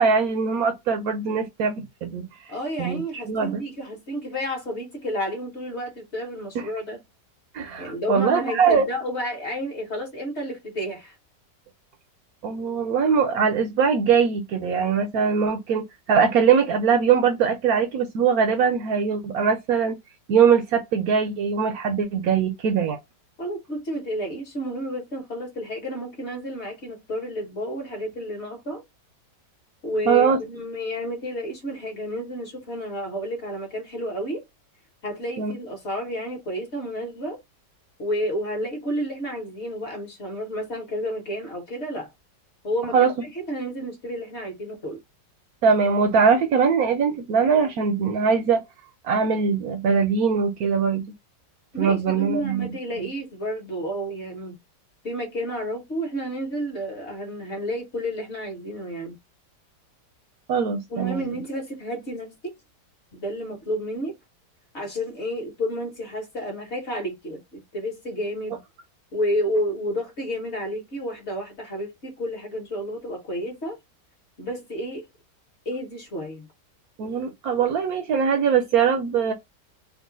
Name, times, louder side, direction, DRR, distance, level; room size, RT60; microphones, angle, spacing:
voice 1, 0.0-2.3 2.8-3.0 3.3-3.6 6.5-6.7 7.5-8.8 12.4-20.0 20.3-23.0 30.1-30.4 35.4-35.5 42.9-43.1 45.6-48.6 49.0-51.1 51.8-52.8 60.5-61.4 77.0-79.3, right 6 dB, 70° right, 0.9 m, -21 dB
voice 2, 2.5-7.0 7.8-11.1 23.4-28.8 29.8-34.4 35.0-37.4 38.0-42.1 42.6-45.0 51.7-54.6 55.0-59.2 60.9-62.4 63.1-64.1 64.7-68.6 69.1-73.8 74.4-75.0 75.6-76.5, equal, 45° left, 1.2 m, -31 dB
3.0 x 2.4 x 3.7 m
omnidirectional pair, 1.8 m